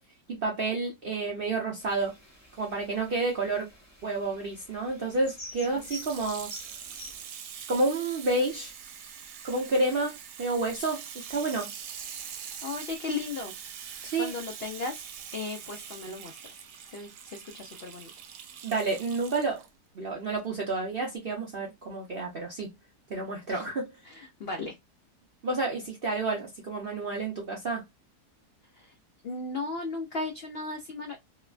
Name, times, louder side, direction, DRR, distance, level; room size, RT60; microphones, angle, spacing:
voice 1, 0.3-2.1 2.6-3.7 4.0-6.5 7.7-8.7 9.4-11.7 14.0-14.3 18.6-19.6 19.9-22.7 23.1-24.0 25.4-27.8, right 3 dB, 60° right, 0.6 m, -30 dB
sound 1, 1.8-7.2, equal, 20° left, 0.4 m, -48 dB
Water tap faucet / Sink (filling or washing), 5.7-19.7 20.4-20.5, right 8 dB, 80° right, 1.1 m, -43 dB
voice 2, 12.6-13.5 14.2-15.0 15.3-16.4 16.9-18.1 23.5-23.6 24.0-24.7 28.8-28.9 29.2-31.2, left 3 dB, 75° left, 0.5 m, -36 dB
2.9 x 2.1 x 2.3 m
omnidirectional pair, 1.7 m